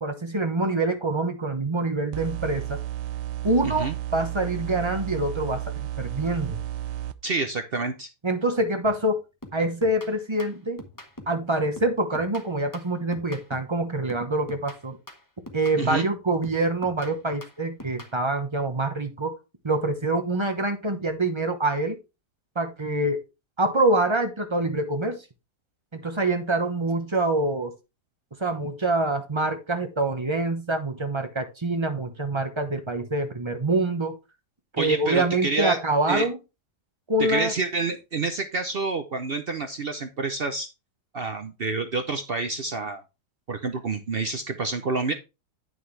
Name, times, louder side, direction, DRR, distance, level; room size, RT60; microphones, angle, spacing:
voice 1, 0.0-2.8 3.4-6.6 8.2-9.2 9.5-10.8 11.3-15.0 15.5-19.4 19.6-22.0 22.5-23.2 23.6-25.2 25.9-27.7 28.4-34.2 34.7-36.4 37.1-37.5, right 2 dB, 20° right, 0.8 m, -25 dB
sound 1, 2.1-7.1, right 13 dB, 85° right, 1.2 m, -32 dB
voice 2, 3.6-4.0 7.2-8.1 15.8-16.1 34.8-35.8 36.1-36.3 37.2-40.7 41.1-43.0 43.5-45.1, right 3 dB, 60° right, 0.6 m, -28 dB
sound 2, 8.8-9.1 9.4-11.4 11.7-13.8 14.1-16.1 16.4-18.2, left 1 dB, 15° left, 1.0 m, -44 dB
9.3 x 6.1 x 3.2 m
omnidirectional pair, 1.8 m